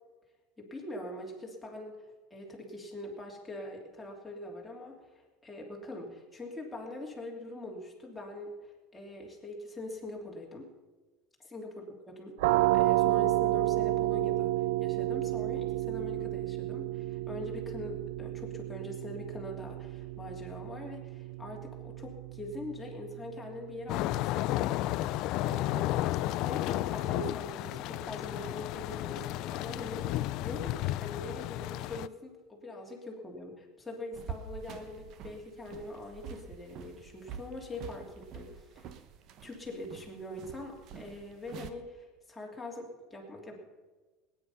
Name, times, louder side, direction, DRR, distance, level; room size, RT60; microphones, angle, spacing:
voice 1, 0.6-5.0 5.4-10.7 11.4-12.4 12.7-14.5 14.8-24.8 25.0-30.1 30.4-38.9 39.4-43.6, left 1 dB, 5° left, -2 dB, 3.0 m, -43 dB
sound 1, 12.4-23.9, right 17 dB, 80° right, 0.5 m, -31 dB
sound 2, 23.9-32.1, left 16 dB, 55° left, 0.4 m, -32 dB
sound 3, 34.1-41.7, right 7 dB, 45° right, 1.1 m, -46 dB
19.0 x 9.8 x 5.6 m, 1.3 s
supercardioid pair, 140°, 0 cm